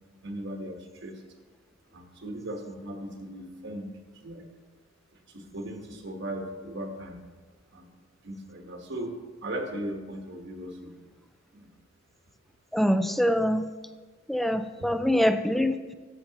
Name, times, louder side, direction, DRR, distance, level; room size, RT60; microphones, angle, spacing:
voice 1, 0.2-1.2 1.9-3.9 4.1-4.5 5.3-7.2 7.7-7.9 8.2-9.1 9.4-10.9 11.5-11.7 14.8-14.9, right 1 dB, 65° right, 3 dB, 1.2 m, -37 dB
voice 2, 12.7-13.7 14.3-15.9, equal, ahead, 10 dB, 0.3 m, -24 dB
12.0 x 8.2 x 2.9 m, 1.4 s
head